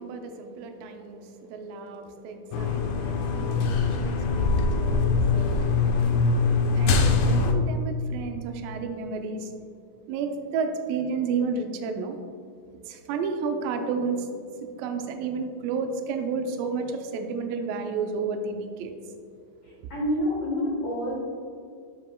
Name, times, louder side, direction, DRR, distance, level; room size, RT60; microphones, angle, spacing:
voice 1, 0.0-6.0 6.7-9.8 10.1-12.2 12.8-19.2 19.8-19.9, right 5 dB, 80° right, 5 dB, 2.3 m, -32 dB
sound 1, 2.5-7.5, left 4 dB, 80° left, 1.9 m, -23 dB
voice 2, 19.6-21.1, left 1 dB, 60° left, -6 dB, 1.7 m, -28 dB
12.0 x 5.2 x 2.2 m, 2.3 s
omnidirectional pair, 4.1 m